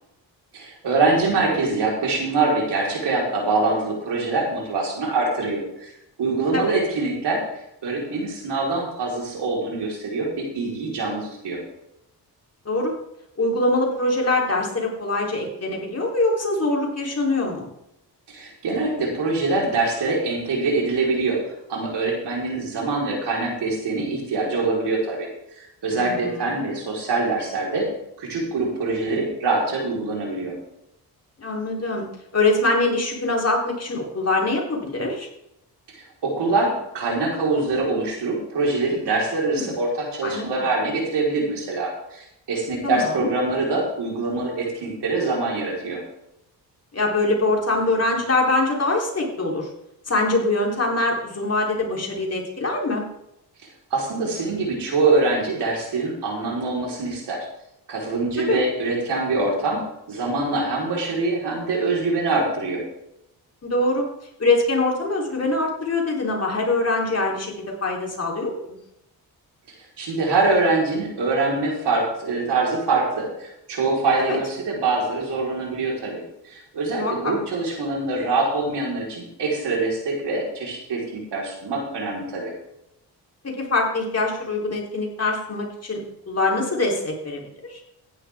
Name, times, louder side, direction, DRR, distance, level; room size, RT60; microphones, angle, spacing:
voice 1, 0.5-5.9 6.2-7.4 7.8-11.6 18.3-21.4 21.7-25.3 25.8-27.9 28.2-30.6 35.9-46.0 53.9-57.4 57.9-62.8 70.0-76.2 76.5-82.5, right 3 dB, 80° right, -2 dB, 4.8 m, -24 dB
voice 2, 13.4-17.7 25.9-26.5 31.4-32.0 32.3-35.3 39.5-39.7 40.2-40.7 42.8-43.3 46.9-49.7 50.1-53.1 58.5-58.6 63.6-64.1 64.4-67.5 67.8-68.8 74.2-74.4 77.0-77.3 83.4-87.8, left 2 dB, 40° left, -1 dB, 4.0 m, -23 dB
15.5 x 11.0 x 3.8 m, 0.82 s
cardioid pair, 80°, 40 cm